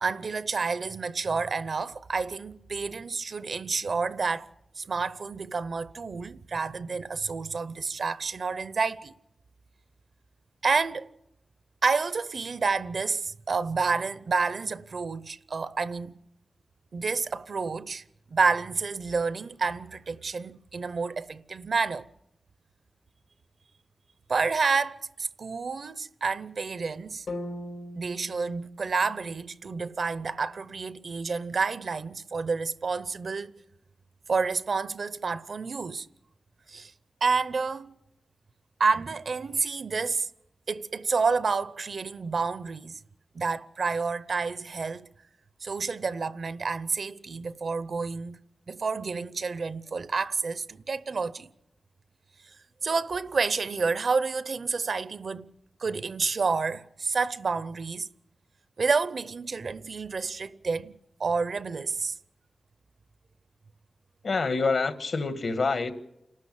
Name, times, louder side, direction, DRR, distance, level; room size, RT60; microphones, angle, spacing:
voice 1, 0.0-4.5 4.8-9.1 10.6-11.1 11.8-16.1 16.9-18.0 18.3-22.1 24.3-27.3 28.0-33.5 34.3-36.1 36.7-36.9 37.2-37.9 38.8-40.3 40.7-43.0 43.3-45.1 45.6-48.4 48.7-51.5 52.8-55.5 55.8-58.1 58.8-62.1, right 4 dB, 60° right, 0.7 m, -29 dB
sound 1, 27.3-31.3, left 1 dB, 80° left, 2.6 m, -42 dB
voice 2, 64.2-65.9, left 4 dB, 65° left, 1.5 m, -26 dB
29.0 x 13.0 x 7.6 m
wide cardioid pair, 140°, 0 cm